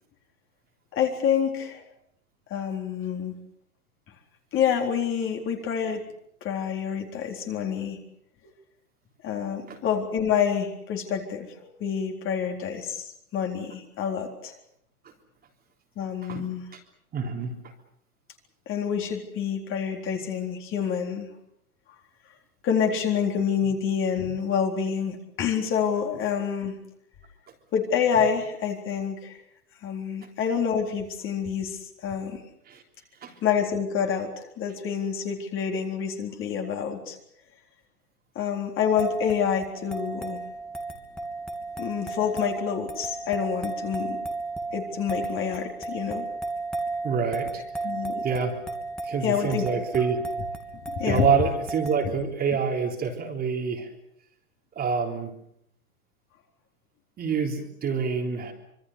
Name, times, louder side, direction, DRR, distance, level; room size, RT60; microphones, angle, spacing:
voice 1, 0.9-1.8 2.5-3.3 4.5-6.0 6.4-8.0 9.2-14.5 16.0-16.7 18.7-21.3 22.6-26.8 27.7-29.4 29.8-32.4 33.4-37.2 38.4-40.4 41.8-44.2 44.7-46.2 47.8-48.3 49.2-49.6 50.9-51.3 52.0-52.2, left 7 dB, 25° left, 2 dB, 4.0 m, -27 dB
voice 2, 17.1-17.5 32.7-32.8 33.2-33.3 47.0-47.6 48.2-48.6 49.0-50.2 51.0-53.9 54.8-55.3 57.2-58.5, right 6 dB, 20° right, 2 dB, 3.6 m, -26 dB
sound 1, 38.8-52.1, right 3 dB, ahead, 2.9 m, -34 dB
26.0 x 23.5 x 6.7 m, 0.74 s
hypercardioid pair, 120°, 46 cm